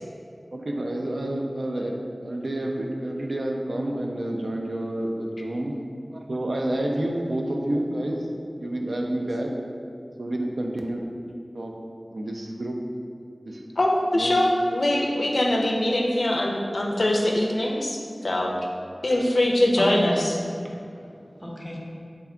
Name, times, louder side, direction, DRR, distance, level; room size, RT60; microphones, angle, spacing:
voice 1, 0.5-1.9 2.2-5.7 6.1-8.3 8.6-9.5 10.2-11.0 11.5-11.7 12.1-12.8 13.4-13.6 14.1-14.4, right 1 dB, 80° right, 1 dB, 0.3 m, -29 dB
voice 2, 13.8-18.5 19.0-20.3, left 1 dB, 75° left, 0 dB, 0.4 m, -23 dB
voice 3, 19.8-20.3 20.6-21.8, left 1 dB, 5° left, -3 dB, 0.6 m, -33 dB
3.4 x 2.2 x 3.6 m, 2.4 s
wide cardioid pair, 55°, 0 cm